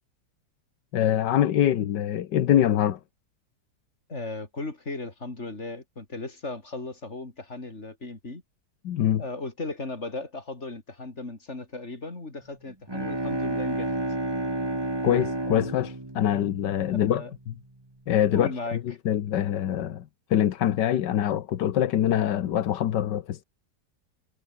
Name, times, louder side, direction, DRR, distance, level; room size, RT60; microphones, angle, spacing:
voice 1, 0.9-3.0 8.8-9.2 15.0-17.5 18.1-18.5 18.8-20.0 20.3-23.4, left 11 dB, 85° left, 1.7 m, -24 dB
voice 2, 4.1-8.4 9.2-13.9 16.9-17.3 18.3-18.8, left 2 dB, 40° left, 4.4 m, -36 dB
Bowed string instrument, 12.7-17.4, right 2 dB, 15° right, 2.1 m, -31 dB
omnidirectional pair, 1.8 m